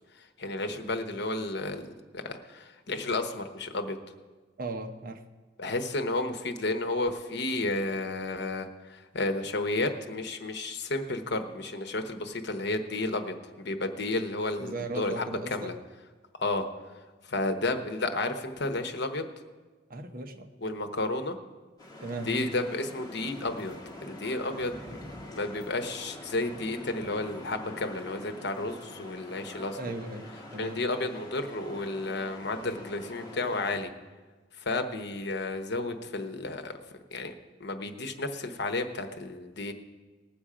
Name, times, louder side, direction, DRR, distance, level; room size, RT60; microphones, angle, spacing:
voice 1, 0.4-4.0 5.6-8.7 9.1-15.7 16.4-16.6 17.3-19.3 20.6-21.4 22.2-29.8 30.6-33.9 34.7-36.7 37.1-37.3 37.6-39.7, left 2 dB, 65° left, 7 dB, 1.0 m, -32 dB
voice 2, 4.6-5.2 14.6-15.7 19.9-20.5 22.0-22.3 29.8-30.8, right 2 dB, 50° right, 6 dB, 0.9 m, -37 dB
sound 1, 21.8-33.8, left 1 dB, 20° left, 1.7 m, -45 dB
19.5 x 7.1 x 5.0 m, 1.3 s
head